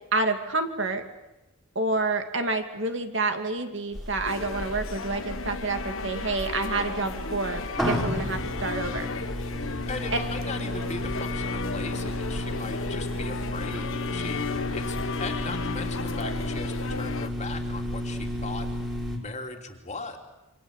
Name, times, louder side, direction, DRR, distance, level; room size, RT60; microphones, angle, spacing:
voice 1, 0.1-1.0 1.7-9.1, right 3 dB, 55° right, 6 dB, 2.5 m, -28 dB
sound 1, 4.0-19.2, left 1 dB, 5° right, 3.6 m, -33 dB
sound 2, 4.3-17.3, left 4 dB, 65° left, 1.5 m, -35 dB
voice 2, 9.9-14.4 14.7-18.7 19.1-20.2, left 3 dB, 30° left, 3 dB, 3.0 m, -38 dB
28.0 x 25.5 x 8.2 m, 1.0 s
head